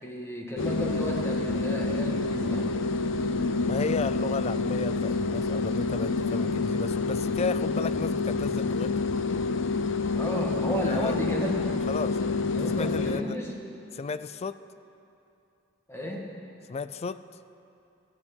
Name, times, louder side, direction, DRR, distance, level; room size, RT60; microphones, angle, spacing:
voice 1, 0.0-2.7 10.2-11.5 12.5-13.5 15.9-16.3, equal, 15° left, -2 dB, 2.0 m, -33 dB
sound 1, 0.6-13.2, left 3 dB, 70° left, 0.6 m, -28 dB
voice 2, 3.7-9.0 10.9-11.2 11.9-13.4 13.9-14.6 16.7-17.2, left 4 dB, 30° left, 14 dB, 0.3 m, -34 dB
15.0 x 7.4 x 9.6 m, 2.7 s
head